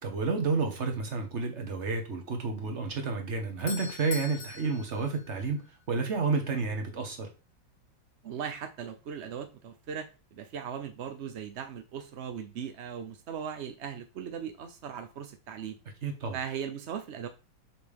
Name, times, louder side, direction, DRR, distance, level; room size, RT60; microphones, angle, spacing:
voice 1, 0.0-7.3 16.0-16.4, right 4 dB, 40° right, 1.4 m, -30 dB
Doorbell, 3.2-6.1, left 5 dB, 65° left, 1.4 m, -43 dB
voice 2, 8.2-15.8 16.3-17.3, right 8 dB, 60° right, 0.7 m, -38 dB
6.1 x 5.2 x 3.5 m
omnidirectional pair, 2.0 m